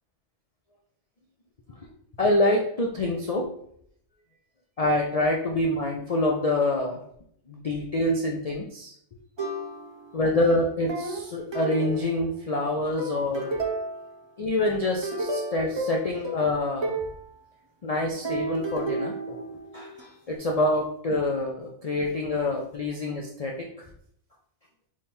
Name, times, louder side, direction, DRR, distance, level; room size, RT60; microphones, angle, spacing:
voice 1, 2.2-3.5 4.8-7.0 7.5-8.9 10.1-13.5 14.4-16.9 17.8-19.4 19.7-23.7, left 1 dB, 75° left, -1 dB, 0.3 m, -26 dB
sound 1, 9.4-10.2 10.9-12.5 13.0-14.2 14.7-17.2 18.2-20.0, right 2 dB, 40° right, 0.4 m, -32 dB
3.6 x 3.1 x 4.2 m, 0.67 s
omnidirectional pair, 1.4 m